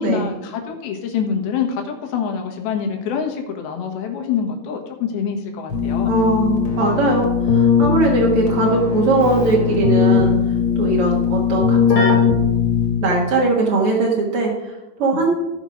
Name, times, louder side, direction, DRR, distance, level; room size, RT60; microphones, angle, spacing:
voice 1, 0.0-6.2 15.1-15.2, left 7 dB, 80° left, 3 dB, 3.2 m, -25 dB
Keyboard (musical), 5.7-13.3, left 6 dB, 45° left, 2.0 m, -19 dB
voice 2, 6.0-10.4 10.8-12.3 13.0-15.3, right 3 dB, 55° right, -3 dB, 1.7 m, -20 dB
16.0 x 5.4 x 5.1 m, 1.0 s
omnidirectional pair, 4.4 m